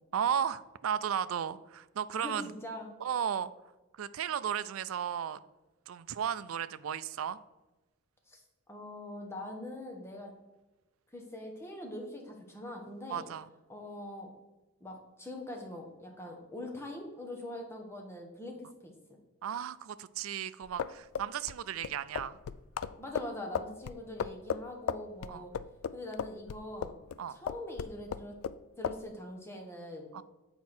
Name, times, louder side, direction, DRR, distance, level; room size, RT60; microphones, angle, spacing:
voice 1, 0.1-2.5 3.0-3.5 4.0-5.4 5.9-7.4 13.1-13.5 19.4-22.4 25.3-25.5 27.2-27.4 30.1-30.2, right 8 dB, 80° right, 15 dB, 0.4 m, -34 dB
voice 2, 2.1-2.9 8.3-8.4 8.7-10.3 11.1-13.3 13.7-14.3 14.8-18.9 23.0-25.5 25.9-26.9 27.3-28.3 28.8-30.1, left 1 dB, 10° left, 1 dB, 1.1 m, -43 dB
sound 1, 20.6-27.2 27.5-28.6 28.8-29.0, left 7 dB, 80° left, 0.3 m, -36 dB
7.9 x 4.7 x 4.3 m, 1.1 s
head